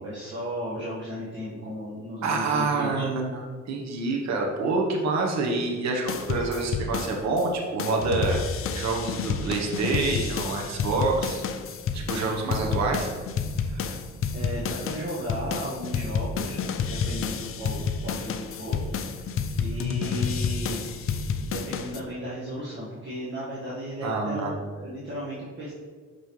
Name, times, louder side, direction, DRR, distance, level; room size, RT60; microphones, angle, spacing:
voice 1, 0.0-3.1 12.4-12.5 14.3-16.6 16.9-19.2 19.6-20.8 21.4-25.7, equal, 40° right, -8 dB, 1.5 m, -35 dB
voice 2, 2.2-8.4 8.7-11.4 11.9-13.1 13.7-13.9 24.0-24.5, right 3 dB, 60° right, 0 dB, 1.1 m, -27 dB
sound 1, 6.1-7.5 7.8-22.0, left 6 dB, 45° left, 0.5 m, -30 dB
6.1 x 5.3 x 3.1 m, 1.5 s
cardioid pair, 90°, 30 cm